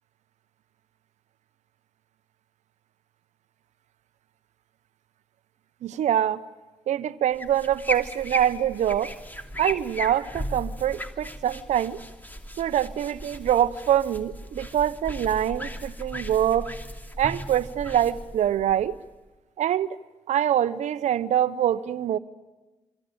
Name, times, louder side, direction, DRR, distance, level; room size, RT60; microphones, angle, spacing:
voice 1, 5.8-6.4 6.9-9.1 9.6-12.0 12.6-16.7 17.2-19.0 19.6-20.0 20.3-22.2, right 10 dB, 75° right, 1.0 m, -24 dB
sound 1, 7.3-19.3, equal, 15° left, 3.1 m, -36 dB
27.5 x 24.5 x 8.9 m
hypercardioid pair, 45°, 12 cm